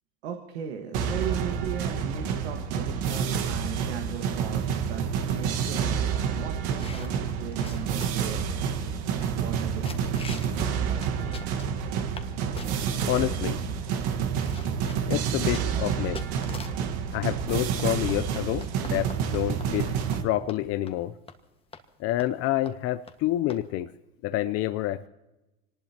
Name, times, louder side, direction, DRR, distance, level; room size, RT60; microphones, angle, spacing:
voice 1, 0.2-8.4 9.4-9.9, right 8 dB, 85° right, 3 dB, 1.8 m, -37 dB
sound 1, 0.9-20.2, right 7 dB, 60° right, 1.6 m, -29 dB
sound 2, 6.7-8.3 8.8-8.9 9.2-9.6 9.8-10.6 10.9-12.3 12.6-13.2 13.8-13.9 14.1-16.9 17.5-20.2 20.5-20.6 20.9-21.0 21.3-21.4 21.7-21.8 22.2-22.4 22.7-22.8 23.1-23.2 23.5-23.6, left 4 dB, 20° left, 1.6 m, -44 dB
voice 2, 13.1-13.6 15.1-16.2 17.1-20.0 20.2-21.1 22.0-23.9 24.2-25.1, left 14 dB, 50° left, 10 dB, 0.6 m, -28 dB
25.0 x 19.5 x 2.9 m, 1.0 s
hypercardioid pair, 100°, 31 cm